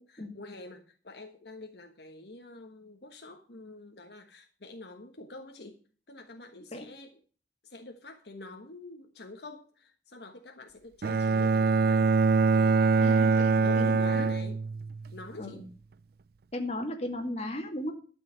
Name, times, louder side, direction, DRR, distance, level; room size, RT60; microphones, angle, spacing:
voice 1, 0.0-5.8 6.1-7.1 7.6-12.1 12.5-14.6 15.1-15.6, left 2 dB, 65° left, 4 dB, 1.4 m, -46 dB
Bowed string instrument, 11.0-15.1, right 4 dB, 60° right, 0.4 m, -24 dB
voice 2, 13.0-14.3 15.4-15.7 16.5-17.9, left 1 dB, 35° left, 3 dB, 2.1 m, -36 dB
12.0 x 5.2 x 7.5 m, 0.40 s
head